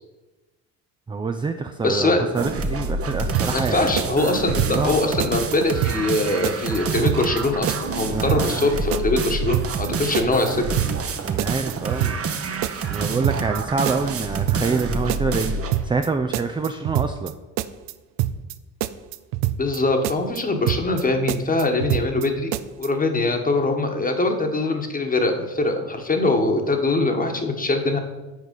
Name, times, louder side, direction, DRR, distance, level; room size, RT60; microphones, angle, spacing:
voice 1, 1.1-4.1 4.7-5.0 8.1-8.5 11.2-12.2 12.9-17.4, right 4 dB, 15° right, 6 dB, 0.4 m, -26 dB
voice 2, 1.8-2.3 3.5-10.7 19.6-22.5 22.8-28.0, left 2 dB, 20° left, 5 dB, 1.2 m, -22 dB
sound 1, 2.4-15.8, right 4 dB, 35° right, 0.8 m, -28 dB
sound 2, 3.3-3.7 4.0-4.9 5.2-5.6 5.8-6.2 6.4-7.4 7.7-8.0 8.3-8.6 8.9-9.9 10.1-10.5 10.8-11.1 11.4-12.4 12.6-13.0 13.2-13.6 13.9-14.8 15.1-15.5 15.7-16.1 16.3-17.3 17.6-17.9 18.2-18.5 18.8-19.8 20.0-20.4 20.7-21.0 21.3-22.3 22.5-22.9, right 13 dB, 70° right, 0.5 m, -25 dB
6.5 x 4.7 x 5.3 m, 1.1 s
hypercardioid pair, 65°, 42 cm